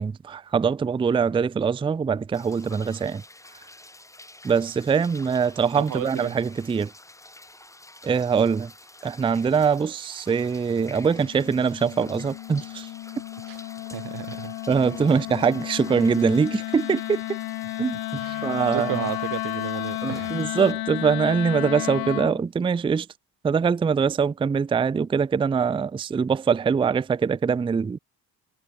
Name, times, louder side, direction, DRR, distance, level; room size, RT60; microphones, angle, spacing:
voice 1, 0.0-3.2 4.4-6.9 8.0-8.7 9.0-12.9 14.7-17.4 17.8-18.0 18.4-19.0 20.0-23.1 23.4-28.0, right 6 dB, 15° right, 0.4 m, -23 dB
sound 1, 2.3-20.7, left 2 dB, 10° left, 4.4 m, -48 dB
voice 2, 5.7-6.4 13.5-13.6 13.9-14.5 15.1-15.2 18.2-20.4, right 14 dB, 65° right, 1.7 m, -33 dB
Wind instrument woodwind instrument, 10.9-22.4, left 16 dB, 85° left, 2.1 m, -33 dB
cardioid pair, 140°, 36 cm